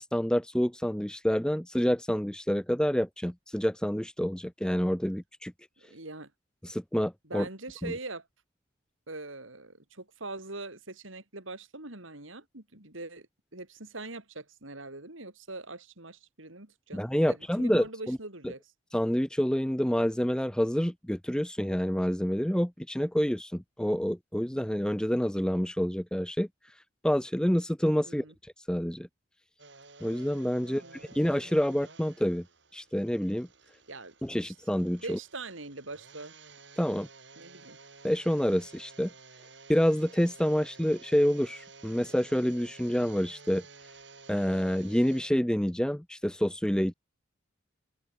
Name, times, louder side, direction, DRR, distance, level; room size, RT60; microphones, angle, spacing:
voice 1, 0.0-5.5 6.6-7.5 7.8-7.9 16.9-18.2 18.9-26.7 27.0-29.1 30.0-32.4 32.7-33.5 34.2-35.2 36.8-37.1 38.0-39.1 39.7-43.6 44.3-46.9, equal, 5° left, 0.7 m, -28 dB
voice 2, 5.8-6.3 7.3-8.3 9.1-13.3 13.5-18.6 28.0-28.3 30.6-31.2 33.9-34.1 34.4-34.5 35.0-36.3 37.4-37.8, right 2 dB, 75° right, 4.8 m, -42 dB
sound 1, 29.6-45.3, right 4 dB, 60° right, 7.1 m, -53 dB
open air
head